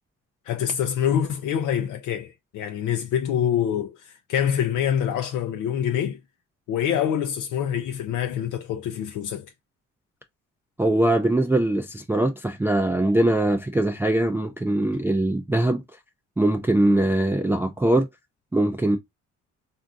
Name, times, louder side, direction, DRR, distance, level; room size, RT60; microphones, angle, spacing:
voice 1, 0.5-6.2 6.7-9.5, left 9 dB, 80° left, 0.5 m, -25 dB
voice 2, 10.8-15.8 16.4-18.1 18.5-19.0, right 1 dB, 10° right, 0.3 m, -22 dB
3.6 x 2.6 x 2.3 m
cardioid pair, 90°, 30 cm